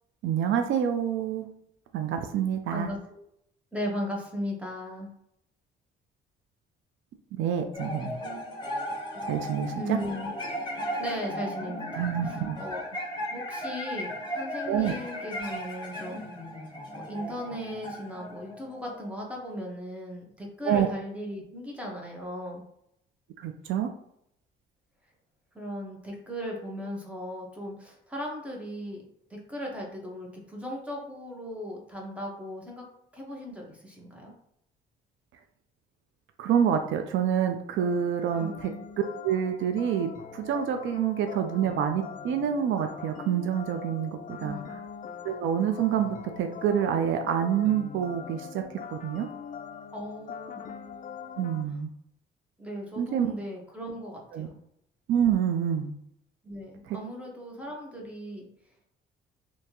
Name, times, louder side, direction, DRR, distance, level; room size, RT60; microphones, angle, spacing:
voice 1, 0.2-1.5 1.9-2.9 7.3-8.2 9.2-10.0 12.0-12.6 14.7-15.0 20.7-20.9 23.4-23.9 36.4-38.7 39.2-44.6 45.2-48.6 48.9-49.3 51.4-51.9 53.0-53.3 54.3-54.5 55.1-55.9 56.9-57.0, right 8 dB, 75° right, 7 dB, 0.4 m, -27 dB
voice 2, 2.7-3.2 3.7-5.1 9.7-10.3 11.0-12.9 13.3-16.3 16.9-22.6 25.5-29.0 29.3-32.9 33.1-34.3 38.3-38.5 44.4-44.8 49.9-50.6 51.7-51.8 52.6-54.6 56.4-58.5, equal, 5° right, -2 dB, 1.2 m, -37 dB
sound 1, 7.7-19.3, equal, 20° left, 1.1 m, -36 dB
sound 2, 37.8-51.6, left 7 dB, 45° left, 0.4 m, -42 dB
3.3 x 2.8 x 2.9 m, 0.75 s
cardioid pair, 90°, 20 cm